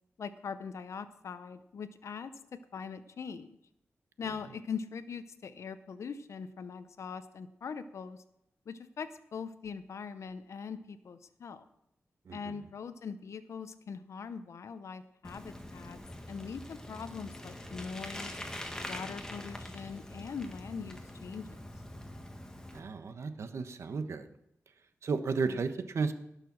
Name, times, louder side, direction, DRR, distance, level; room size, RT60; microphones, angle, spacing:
voice 1, 0.2-3.6 4.2-8.2 8.7-11.6 12.3-16.0 16.3-18.3 18.8-21.6 25.5-25.6, left 6 dB, 80° left, 12 dB, 0.7 m, -42 dB
Bicycle, 15.2-22.8, left 1 dB, 15° left, 1.7 m, -44 dB
voice 2, 22.7-24.3 25.0-26.1, right 4 dB, 70° right, 9 dB, 1.1 m, -33 dB
17.5 x 6.7 x 6.2 m, 0.82 s
wide cardioid pair, 100°, 5 cm